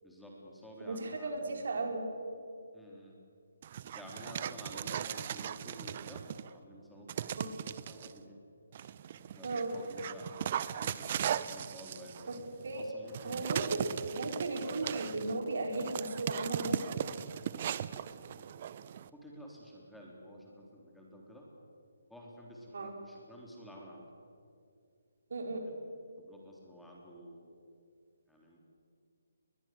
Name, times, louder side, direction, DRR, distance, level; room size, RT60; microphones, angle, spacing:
voice 1, 0.0-2.0 2.7-3.2 3.9-8.4 9.1-12.3 12.8-13.9 18.4-18.5 19.1-21.5 22.1-24.1 25.6-25.7 26.2-27.6 28.3-28.6, equal, ahead, -3 dB, 3.7 m, -51 dB
voice 2, 0.8-2.0 7.4-7.5 9.4-9.7 12.3-12.4 12.6-12.8 13.2-13.9 14.2-17.0 22.7-22.9 25.3-25.6, right 2 dB, 65° right, 3 dB, 4.5 m, -35 dB
Dog, 3.6-6.5 7.1-8.1 8.7-19.1, right 9 dB, 40° right, 0.8 m, -38 dB
22.0 x 21.0 x 7.9 m, 2.4 s
figure-of-eight pair, 150°, 0 cm